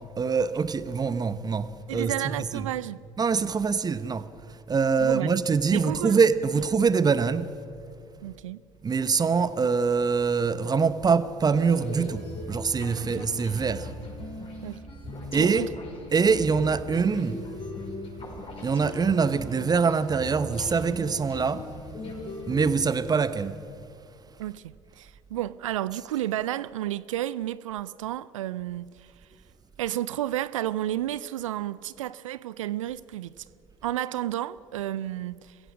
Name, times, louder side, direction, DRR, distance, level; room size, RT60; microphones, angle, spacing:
voice 1, 0.0-2.7 3.2-4.3 4.7-7.5 8.8-13.9 15.3-15.7 16.1-17.4 18.6-21.6 22.5-23.6, right 5 dB, 25° right, 1.0 m, -24 dB
voice 2, 1.9-3.0 5.0-5.4 5.7-6.2 8.2-8.6 13.0-13.2 14.6-14.8 15.4-15.7 24.4-29.1 29.8-33.4 33.8-35.6, right 13 dB, 75° right, 0.5 m, -32 dB
sound 1, 11.5-22.7, left 1 dB, 35° left, 5.8 m, -39 dB
28.0 x 16.5 x 6.2 m
figure-of-eight pair, 60°, 17 cm